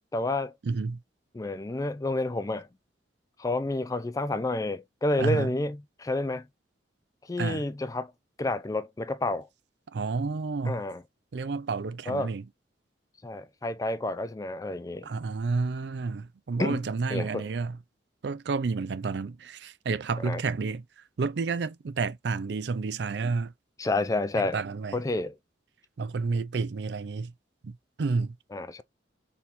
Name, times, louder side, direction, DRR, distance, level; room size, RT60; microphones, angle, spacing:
voice 1, 0.1-0.5 1.3-2.7 3.4-6.5 7.3-8.1 8.4-9.5 10.6-11.0 12.1-12.3 13.2-15.1 16.6-16.8 17.1-17.5 20.2-20.4 23.8-24.6 24.9-25.3 28.5-28.8, left 2 dB, 20° left, 0.4 m, -29 dB
voice 2, 0.6-1.0 5.2-5.5 7.4-7.6 9.9-10.8 11.3-12.4 15.0-17.8 18.2-20.8 21.2-23.5 24.4-25.0 26.0-27.3 27.6-28.3, right 4 dB, 65° right, 0.4 m, -30 dB
4.3 x 3.4 x 2.6 m
head